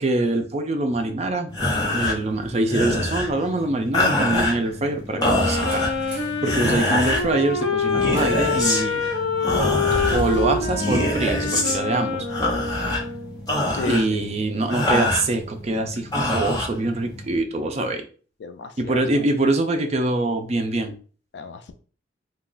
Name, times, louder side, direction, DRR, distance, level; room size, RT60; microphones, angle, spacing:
voice 1, 0.0-1.5 1.9-5.9 6.4-9.1 10.1-12.3 13.8-18.0 18.8-21.0, right 2 dB, 35° right, 6 dB, 0.4 m, -24 dB
sound 1, 1.5-17.4, left 1 dB, 20° left, 0.8 m, -26 dB
Wind instrument woodwind instrument, 5.1-13.4, left 4 dB, 85° left, 1.1 m, -26 dB
sound 2, 5.4-6.5 8.1-8.5 8.8-9.1 9.9-12.2, right 1 dB, 60° right, 0.7 m, -34 dB
voice 2, 13.8-14.2 18.4-19.0 21.3-21.7, left 4 dB, 65° left, 8 dB, 0.4 m, -32 dB
2.3 x 2.3 x 3.7 m, 0.40 s
head